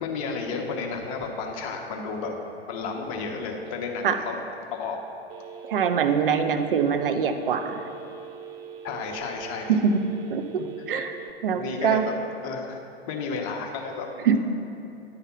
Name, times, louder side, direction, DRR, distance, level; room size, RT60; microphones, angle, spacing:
voice 1, 0.0-2.3 2.7-4.4 4.7-5.0 8.8-9.8 10.6-10.7 11.5-12.1 12.4-12.8 13.1-14.1, left 5 dB, 35° left, 2 dB, 0.9 m, -32 dB
Telephone, 5.3-11.3, right 7 dB, 25° right, 0.3 m, -42 dB
voice 2, 5.6-7.8 9.7-10.0 10.3-10.4 10.9-12.1 14.2-14.4, right 7 dB, 60° right, 8 dB, 0.6 m, -23 dB
9.5 x 3.4 x 5.8 m, 2.8 s
figure-of-eight pair, 100°, 31 cm